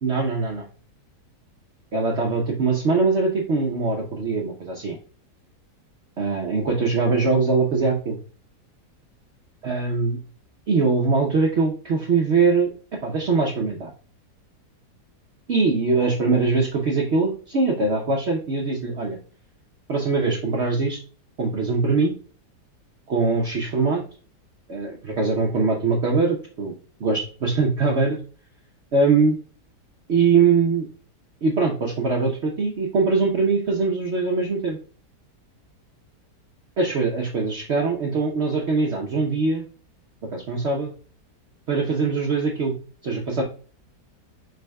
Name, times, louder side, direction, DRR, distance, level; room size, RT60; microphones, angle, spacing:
voice 1, 0.0-0.6 1.9-5.0 6.2-8.2 9.6-10.2 10.7-12.7 13.0-13.9 15.5-19.2 19.9-21.0 21.4-22.1 23.1-24.0 24.7-26.7 27.0-28.2 28.9-29.4 30.1-30.9 31.4-34.8 36.8-39.6 40.3-40.9 41.7-42.7 43.0-43.4, right 4 dB, 55° right, 0 dB, 0.8 m, -22 dB
4.9 x 4.1 x 2.2 m, 0.40 s
omnidirectional pair, 1.8 m